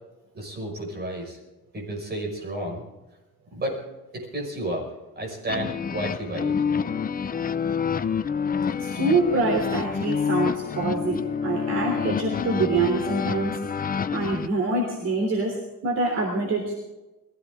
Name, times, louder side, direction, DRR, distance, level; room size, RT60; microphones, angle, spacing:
voice 1, 0.3-1.4 1.7-2.8 3.5-3.8 4.1-6.5, right 1 dB, 30° right, 0 dB, 5.8 m, -32 dB
sound 1, 5.5-14.5, left 6 dB, 25° left, 0.6 m, -28 dB
voice 2, 8.8-13.6 14.1-15.5 15.8-16.7, right 3 dB, 50° right, 0 dB, 3.4 m, -25 dB
22.0 x 15.5 x 3.8 m, 1.1 s
cardioid pair, 145°, 34 cm